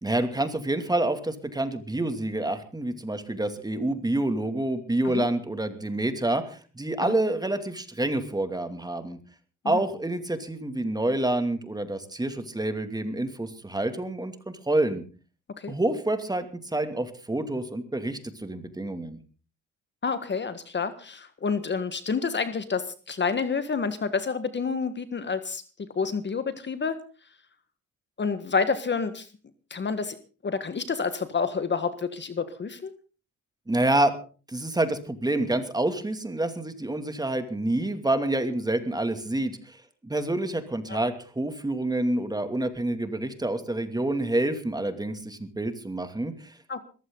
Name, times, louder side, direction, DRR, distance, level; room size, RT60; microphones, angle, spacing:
voice 1, 0.0-9.2 9.6-15.0 15.7-19.2 33.7-34.1 34.5-39.8 40.0-46.5, right 1 dB, 15° right, 8 dB, 2.6 m, -28 dB
voice 2, 20.0-25.6 25.9-27.0 28.2-29.3 29.7-30.2 30.4-32.9 40.9-41.0 46.7-46.8, left 5 dB, 35° left, 11 dB, 1.6 m, -29 dB
21.0 x 15.0 x 4.0 m, 0.37 s
cardioid pair, 90°, 30 cm